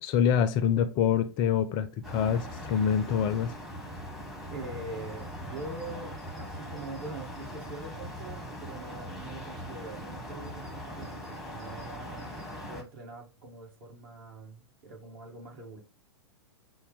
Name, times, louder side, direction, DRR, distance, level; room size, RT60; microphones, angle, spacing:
voice 1, 0.0-3.5, left 8 dB, 35° left, 0.4 m, -26 dB
sound 1, 2.0-12.8, equal, ahead, 0.9 m, -41 dB
voice 2, 4.5-15.8, right 2 dB, 50° right, 1.6 m, -43 dB
5.5 x 2.1 x 3.7 m
figure-of-eight pair, 105°, 14 cm